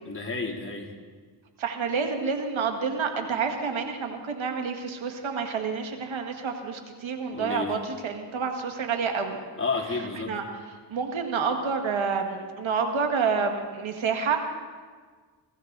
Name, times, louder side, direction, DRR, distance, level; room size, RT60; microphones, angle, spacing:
voice 1, 0.0-0.9 7.3-7.8 9.6-10.4, left 4 dB, 25° left, -2 dB, 3.1 m, -31 dB
voice 2, 1.6-9.4 10.3-10.4 10.9-14.4, right 5 dB, 85° right, 4 dB, 1.8 m, -28 dB
22.5 x 15.5 x 4.0 m, 1.5 s
cardioid pair, 60°, 46 cm